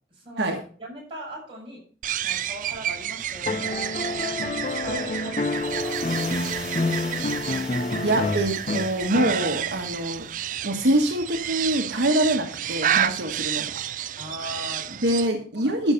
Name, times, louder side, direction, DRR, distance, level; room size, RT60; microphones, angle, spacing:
voice 1, 0.1-0.5 0.8-1.8 2.2-6.7 8.2-8.3 13.2-13.4 14.2-14.9 15.5-15.8, right 1 dB, 30° right, -4 dB, 6.4 m, -40 dB
sound 1, 2.0-15.3, right 10 dB, 45° right, 0.3 m, -30 dB
sound 2, 3.4-9.9 11.4-11.5, left 2 dB, 40° left, 0.6 m, -28 dB
sound 3, 5.5-10.5, right 1 dB, 5° right, 2.2 m, -43 dB
voice 2, 8.0-10.3 10.6-13.6 15.0-15.9, right 1 dB, 85° right, 2 dB, 1.4 m, -24 dB
12.5 x 5.5 x 5.2 m, 0.43 s
head